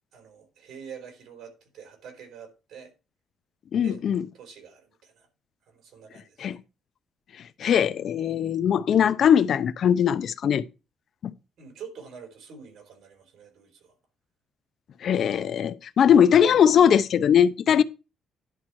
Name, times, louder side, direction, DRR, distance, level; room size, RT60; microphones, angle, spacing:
voice 1, 0.1-2.9 3.8-4.0 4.3-5.3 5.7-6.4 11.6-14.0, right 7 dB, 70° right, 3.8 m, -46 dB
voice 2, 3.7-4.2 6.4-6.6 7.6-10.6 11.2-11.3 15.0-17.8, left 8 dB, 60° left, 0.6 m, -20 dB
11.0 x 4.3 x 6.2 m
cardioid pair, 90°, 0 cm